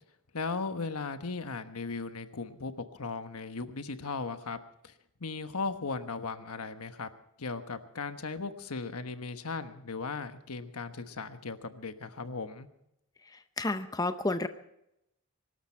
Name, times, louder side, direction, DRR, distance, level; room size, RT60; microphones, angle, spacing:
voice 1, 0.3-4.9 5.2-7.1 7.4-12.7, left 4 dB, 90° left, 9 dB, 1.2 m, -37 dB
voice 2, 13.6-14.5, left 2 dB, 15° left, 10 dB, 0.6 m, -30 dB
23.5 x 12.5 x 4.5 m, 0.84 s
head